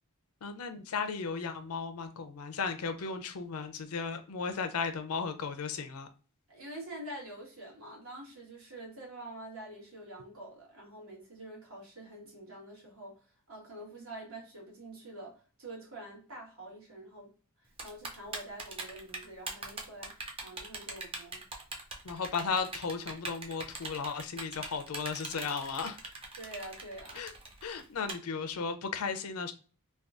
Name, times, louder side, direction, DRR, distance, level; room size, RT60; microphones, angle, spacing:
voice 1, 0.4-6.1 22.0-26.0 27.1-27.3 27.6-29.5, left 5 dB, 90° left, 0.5 m, -35 dB
voice 2, 6.5-17.3 17.6-21.4 26.4-27.2, right 1 dB, 70° right, 1.5 m, -46 dB
Typing, 17.8-28.1, right 3 dB, 25° right, 0.5 m, -41 dB
3.4 x 2.2 x 2.4 m
head